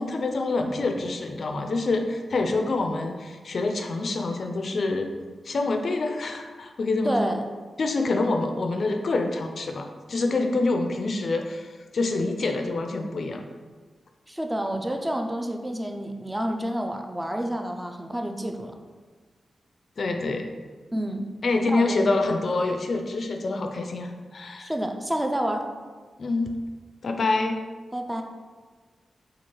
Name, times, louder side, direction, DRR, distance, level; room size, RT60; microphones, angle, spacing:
voice 1, 0.0-5.1 5.4-7.3 7.8-13.4 20.0-20.5 21.4-24.7 26.2-26.5 27.0-27.6, left 3 dB, 65° left, 4 dB, 0.3 m, -26 dB
voice 2, 7.0-7.4 14.3-18.8 20.9-21.3 21.6-22.1 24.6-25.7 27.9-28.2, right 1 dB, 10° right, 4 dB, 0.4 m, -29 dB
4.4 x 2.3 x 3.0 m, 1.4 s
cardioid pair, 60°, 0 cm